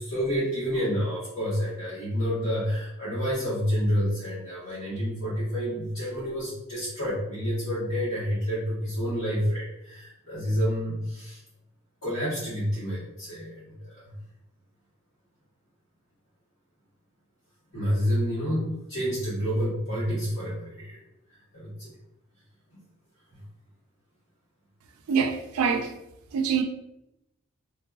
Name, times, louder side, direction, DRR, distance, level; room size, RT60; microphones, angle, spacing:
voice 1, 0.0-11.4 12.0-14.1 17.7-21.0 21.5-21.9 22.7-22.8, equal, 70° left, 1.3 m, -29 dB
voice 2, 25.1-26.0 26.3-26.6, right 6 dB, 85° right, 0.3 m, -25 dB
2.5 x 2.4 x 2.4 m
head